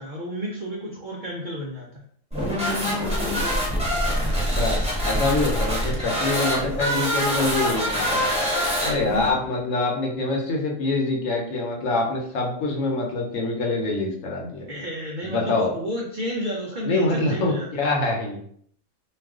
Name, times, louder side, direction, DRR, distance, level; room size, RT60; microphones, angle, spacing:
voice 1, 0.0-2.1 5.3-5.4 8.8-9.3 14.6-17.9, equal, 70° right, -2 dB, 0.4 m, -32 dB
sound 1, 2.3-9.3, equal, 5° right, 0.5 m, -24 dB
voice 2, 5.0-8.2 8.8-14.7 15.2-15.7 16.8-18.4, left 2 dB, 70° left, 0 dB, 1.0 m, -25 dB
2.4 x 2.4 x 3.5 m, 0.64 s
omnidirectional pair, 1.4 m